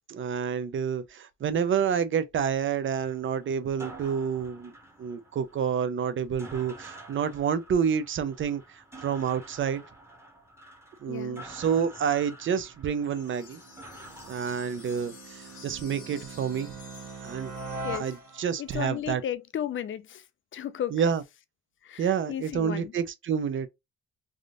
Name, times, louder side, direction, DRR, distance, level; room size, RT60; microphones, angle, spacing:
voice 1, 0.1-4.7 5.0-9.8 11.0-13.6 14.3-16.7 17.2-17.5 18.0-19.2 20.9-21.2 22.0-23.7, right 7 dB, 40° right, 0.5 m, -28 dB
sound 1, 2.9-15.6, right 1 dB, 10° right, 0.9 m, -49 dB
voice 2, 11.1-11.4 17.8-18.1 18.6-20.3 20.5-21.0 21.8-22.9, left 10 dB, 40° left, 0.4 m, -34 dB
sound 2, 12.4-18.7, right 3 dB, 80° right, 1.3 m, -42 dB
sound 3, 13.0-18.5, left 5 dB, 80° left, 1.1 m, -51 dB
3.5 x 2.5 x 2.5 m
cardioid pair, 90°, 30 cm